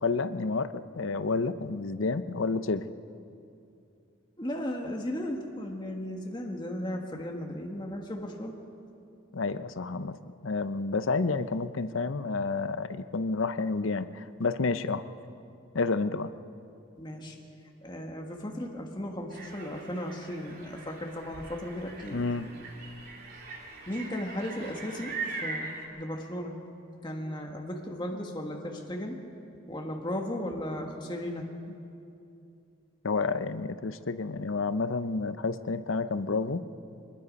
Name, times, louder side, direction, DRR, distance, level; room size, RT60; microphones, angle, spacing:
voice 1, 0.0-2.8 9.3-10.2 10.4-15.0 15.7-16.3 22.1-22.5 33.0-36.6, left 3 dB, 75° left, 12 dB, 0.7 m, -30 dB
voice 2, 4.4-8.5 17.0-17.4 17.8-22.2 23.9-25.1 25.4-25.7 25.9-26.6 27.0-29.2 29.7-31.5, left 1 dB, 20° left, 1 dB, 1.6 m, -35 dB
sound 1, 19.3-25.8, right 3 dB, 45° right, 3.3 m, -41 dB
23.5 x 21.0 x 5.3 m, 2.6 s
head